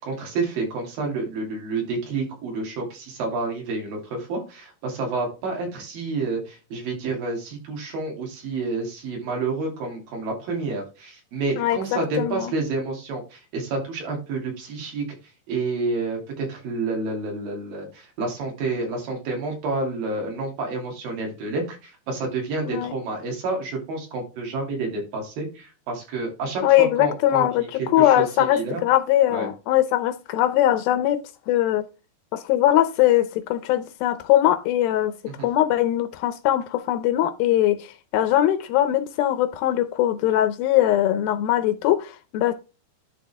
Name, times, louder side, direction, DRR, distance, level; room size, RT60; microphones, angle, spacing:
voice 1, 0.0-15.1 15.5-28.2 28.5-28.8 29.3-29.5 35.3-35.5, right 3 dB, 65° right, 4.2 m, -29 dB
voice 2, 11.6-12.5 22.7-23.0 26.6-31.2 31.5-31.8 32.3-35.1 35.4-42.5, left 13 dB, 80° left, 2.3 m, -21 dB
11.0 x 4.0 x 3.4 m
omnidirectional pair, 4.5 m